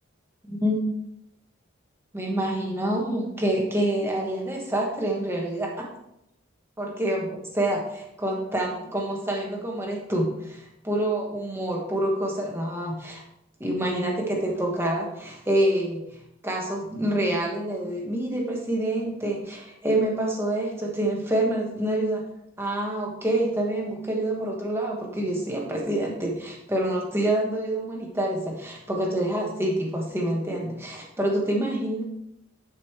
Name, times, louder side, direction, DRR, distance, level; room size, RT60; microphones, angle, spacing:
voice 1, 2.1-5.7 6.8-7.3 7.5-13.2 13.6-16.0 16.4-22.2 22.6-32.0, right 1 dB, 10° right, -1 dB, 1.3 m, -27 dB
10.0 x 5.4 x 3.2 m, 0.81 s
head